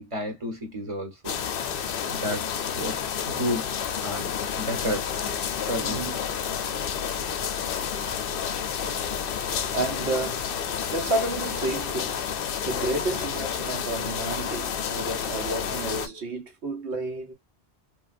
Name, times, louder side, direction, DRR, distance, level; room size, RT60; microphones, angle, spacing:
voice 1, 0.0-1.4 1.7-3.7 4.0-5.1 5.6-6.0, equal, 30° right, 1.1 m, -32 dB
sound 1, 1.2-16.1, left 8 dB, 65° left, 0.7 m, -30 dB
voice 2, 5.8-6.2 8.8-8.9 9.2-12.2 12.6-17.3, right 2 dB, 80° right, 1.3 m, -31 dB
3.2 x 2.4 x 2.5 m
omnidirectional pair, 1.1 m